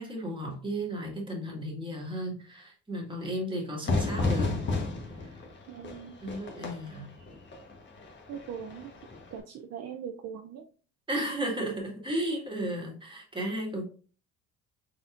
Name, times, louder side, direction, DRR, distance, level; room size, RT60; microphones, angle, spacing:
voice 1, 0.0-4.6 5.2-5.3 6.2-7.1 11.1-13.8, right 1 dB, 15° right, -1 dB, 1.8 m, -34 dB
Fire / Fireworks, 3.9-9.4, left 3 dB, 35° left, 1.2 m, -33 dB
voice 2, 5.7-6.1 8.3-8.9 9.3-10.7, right 7 dB, 50° right, 5 dB, 0.5 m, -40 dB
4.1 x 4.1 x 2.5 m, 0.40 s
cardioid pair, 95°, 33 cm